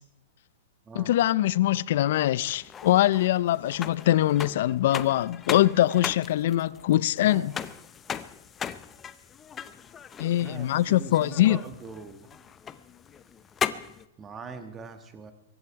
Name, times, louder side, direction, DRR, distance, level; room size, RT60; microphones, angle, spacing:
voice 1, 0.9-7.5 10.2-11.6, left 14 dB, 60° left, 0.5 m, -23 dB
sound 1, 2.5-14.0, left 8 dB, 15° left, 0.6 m, -38 dB
voice 2, 7.2-7.7 10.4-12.3 14.2-15.3, right 4 dB, 15° right, 1.5 m, -42 dB
23.5 x 11.0 x 4.7 m
hypercardioid pair, 155°, 0 cm